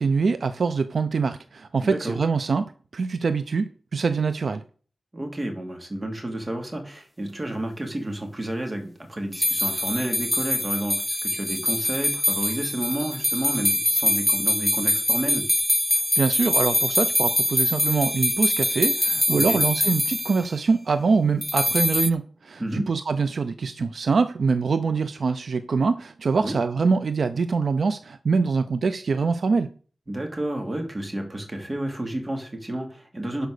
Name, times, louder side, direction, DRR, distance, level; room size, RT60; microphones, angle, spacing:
voice 1, 0.0-4.6 16.2-29.7, right 4 dB, 65° right, 0.5 m, -24 dB
voice 2, 1.8-2.1 5.1-15.4 19.3-19.6 22.6-22.9 26.4-26.6 30.1-33.5, right 1 dB, 25° right, 2.7 m, -30 dB
sound 1, 9.3-20.4 21.4-22.1, left 1 dB, 5° left, 0.8 m, -24 dB
11.5 x 5.1 x 6.7 m
wide cardioid pair, 115°, 0 cm